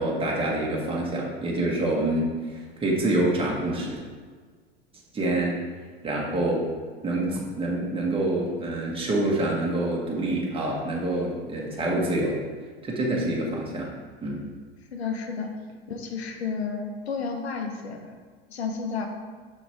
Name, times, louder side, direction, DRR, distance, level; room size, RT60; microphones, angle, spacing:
voice 1, 0.0-2.3 2.8-4.0 5.1-5.6 6.0-6.7 7.0-12.4 12.8-13.9 14.2-14.4, right 1 dB, 15° right, -4 dB, 1.7 m, -26 dB
voice 2, 14.9-15.5 15.9-18.1 18.5-19.1, left 5 dB, 85° left, 4 dB, 1.0 m, -31 dB
5.9 x 5.8 x 3.5 m, 1.5 s
hypercardioid pair, 90°, 31 cm